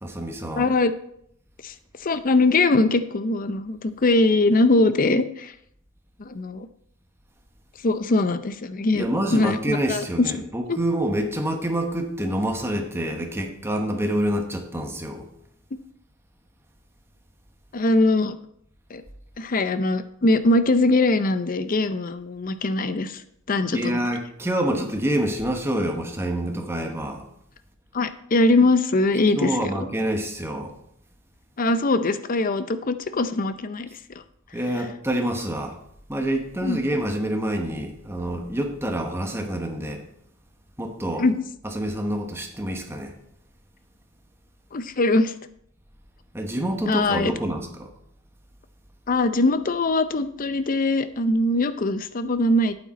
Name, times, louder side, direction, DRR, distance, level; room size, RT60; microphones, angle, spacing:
voice 1, 0.0-0.7 8.9-15.3 23.7-27.2 29.3-30.8 34.5-35.8 36.1-40.0 40.8-41.3 41.6-43.1 46.3-47.9, right 1 dB, 10° right, 3 dB, 1.1 m, -27 dB
voice 2, 0.6-0.9 1.6-1.7 2.0-5.5 6.2-6.7 7.8-10.4 10.7-10.8 17.7-18.4 18.9-19.0 19.4-23.2 23.5-24.0 27.9-29.6 31.6-33.9 36.6-36.8 41.2-41.3 44.7-45.3 46.9-47.3 49.1-52.7, left 2 dB, 40° left, 12 dB, 0.6 m, -22 dB
8.8 x 8.1 x 4.1 m, 0.70 s
head